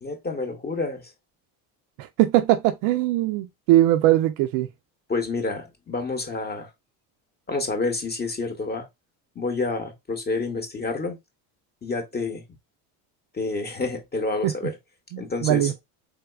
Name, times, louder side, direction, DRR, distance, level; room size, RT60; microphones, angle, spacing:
voice 1, 0.0-1.1 5.1-6.7 7.5-8.9 9.4-11.2 11.8-12.4 13.3-14.8 15.2-15.7, left 3 dB, 25° left, 0.8 m, -28 dB
voice 2, 2.0-4.7 14.4-14.5 15.1-15.7, right 14 dB, 75° right, 0.5 m, -21 dB
3.5 x 2.8 x 2.2 m
supercardioid pair, 95°, 42 cm